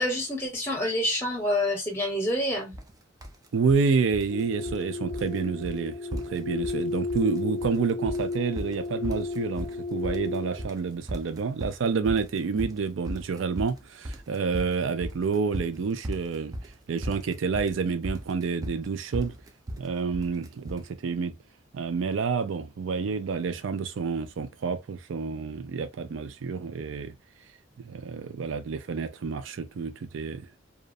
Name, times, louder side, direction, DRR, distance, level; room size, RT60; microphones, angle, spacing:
voice 1, 0.0-2.7, left 1 dB, 10° left, 0.9 m, -27 dB
sound 1, 2.7-2.9 3.2-3.8 4.1-4.9 5.1-5.4 5.6-5.8 6.1-6.8 7.1-7.8 8.1-20.9, equal, 20° right, 0.3 m, -37 dB
voice 2, 3.5-16.5 16.9-19.3 19.8-21.3 21.7-27.1 27.8-30.5, right 5 dB, 90° right, 0.4 m, -29 dB
sound 2, 4.3-10.7, left 3 dB, 40° left, 0.5 m, -33 dB
2.4 x 2.0 x 2.5 m
head